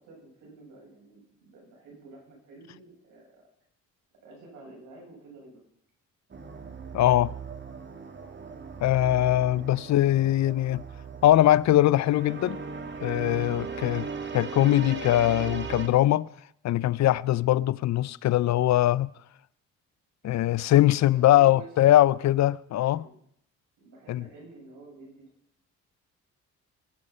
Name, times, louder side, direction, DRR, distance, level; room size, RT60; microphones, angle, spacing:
voice 1, 0.0-3.4 4.2-5.6 20.2-20.6 21.0-21.7 22.7-23.2 23.8-25.3, right 2 dB, 85° right, 7.7 m, -50 dB
sound 1, 6.3-15.9, right 5 dB, 35° right, 2.1 m, -38 dB
voice 2, 6.9-7.3 8.8-10.8 11.2-12.6 13.0-14.1 14.3-16.3 16.6-19.1 20.2-23.1 24.1-24.2, left 14 dB, 65° left, 0.6 m, -22 dB
21.0 x 9.7 x 5.6 m
cardioid pair, 90°, 30 cm